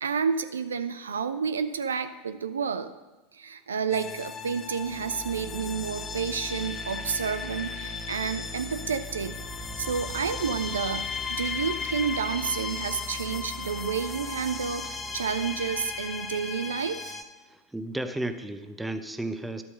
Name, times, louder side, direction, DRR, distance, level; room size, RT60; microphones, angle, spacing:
voice 1, 0.0-2.9 3.3-9.4 9.8-17.1, right 6 dB, 70° right, 11 dB, 0.6 m, -30 dB
sound 1, 3.9-17.2, left 4 dB, 20° left, 1.2 m, -35 dB
voice 2, 17.7-19.6, right 1 dB, 5° right, 9 dB, 0.9 m, -33 dB
12.5 x 8.5 x 6.5 m, 1.1 s
figure-of-eight pair, 80°, 0 cm